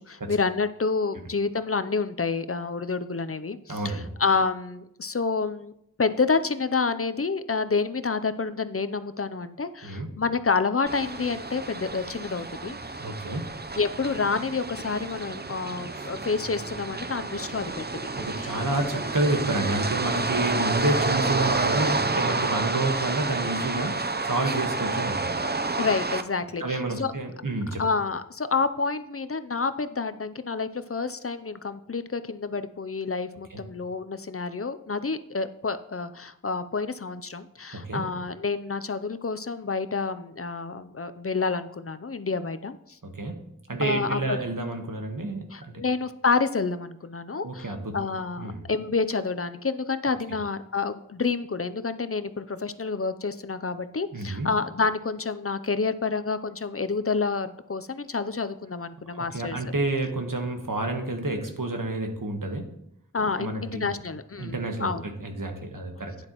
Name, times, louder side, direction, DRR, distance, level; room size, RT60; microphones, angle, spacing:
voice 1, 0.0-5.7 6.0-12.8 13.7-17.8 18.4-18.6 25.8-27.1 27.8-42.8 43.8-44.4 45.5-59.6 63.1-65.0, left 4 dB, 45° left, 12 dB, 0.6 m, -28 dB
voice 2, 3.7-4.1 9.8-10.1 13.0-13.5 15.9-16.1 18.2-25.3 26.6-27.8 33.5-33.6 37.7-38.0 43.0-43.4 43.7-45.8 47.4-48.0 48.4-48.6 54.1-54.5 59.1-62.7 63.4-63.9 64.4-66.3, right 2 dB, 90° right, 3 dB, 1.4 m, -29 dB
sound 1, 10.9-26.2, right 3 dB, 30° right, 0.6 m, -29 dB
11.5 x 9.7 x 3.0 m, 0.76 s
wide cardioid pair, 45°, 32 cm